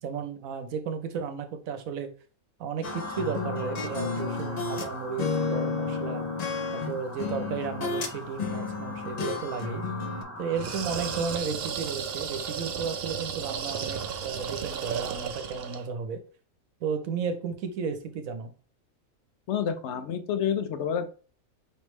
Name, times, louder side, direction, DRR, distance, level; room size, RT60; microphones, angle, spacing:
voice 1, 0.0-2.1 2.6-6.2 6.7-9.8 10.4-16.2 16.8-18.5, right 6 dB, 80° right, 8 dB, 1.1 m, -33 dB
sound 1, 2.8-4.9 5.2-8.1 8.4-10.2, left 4 dB, 80° left, 0.3 m, -32 dB
sound 2, 2.8-11.4, left 1 dB, 10° left, 0.9 m, -41 dB
sound 3, 10.5-15.9, right 7 dB, 60° right, 0.7 m, -34 dB
voice 2, 19.5-21.1, left 8 dB, 60° left, 9 dB, 0.9 m, -28 dB
5.2 x 3.3 x 3.1 m, 0.39 s
omnidirectional pair, 1.4 m